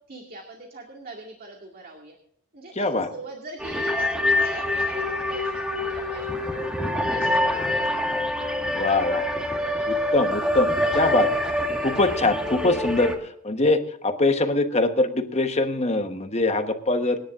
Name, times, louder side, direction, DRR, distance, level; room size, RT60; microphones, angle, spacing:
voice 1, 0.1-2.2 2.5-6.7 7.1-7.9, right 2 dB, 40° right, 1 dB, 2.2 m, -41 dB
voice 2, 2.8-3.1 8.7-9.2 9.9-10.7 10.9-11.4 11.8-17.2, left 2 dB, 30° left, 7 dB, 1.1 m, -23 dB
sound 1, 3.6-13.2, left 1 dB, 5° right, 1.7 m, -25 dB
26.5 x 10.5 x 2.5 m, 0.69 s
head